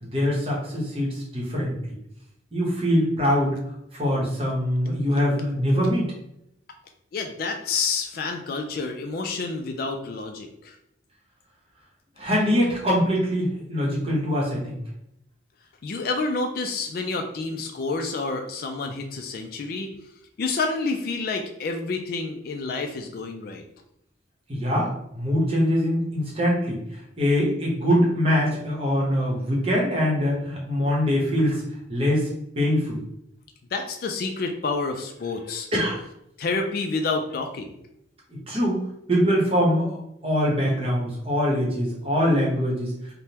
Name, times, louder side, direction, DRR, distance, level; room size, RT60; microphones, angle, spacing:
voice 1, 0.0-1.7 2.5-3.5 3.9-6.1 12.2-14.8 24.5-26.8 27.2-31.6 31.9-32.3 32.5-33.0 35.7-36.0 38.5-42.9, equal, 30° right, -4 dB, 0.9 m, -23 dB
voice 2, 7.1-10.7 15.8-19.9 20.4-23.6 33.7-35.7 36.4-37.7, left 3 dB, 50° left, 4 dB, 0.3 m, -29 dB
3.4 x 2.1 x 2.8 m, 0.78 s
head